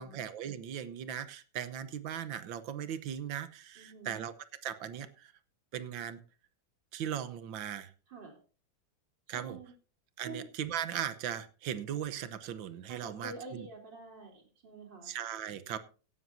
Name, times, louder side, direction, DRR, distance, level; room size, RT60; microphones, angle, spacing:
voice 1, 0.0-4.3 4.6-5.3 5.7-6.2 6.9-7.9 9.3-9.6 10.2-13.7 15.0-15.8, right 9 dB, 85° right, 12 dB, 1.7 m, -38 dB
voice 2, 3.8-4.2 8.1-8.4 9.3-9.7 10.2-10.4 12.9-15.1, right 3 dB, 70° right, 3 dB, 4.3 m, -47 dB
17.0 x 12.5 x 2.7 m, 0.37 s
omnidirectional pair, 2.0 m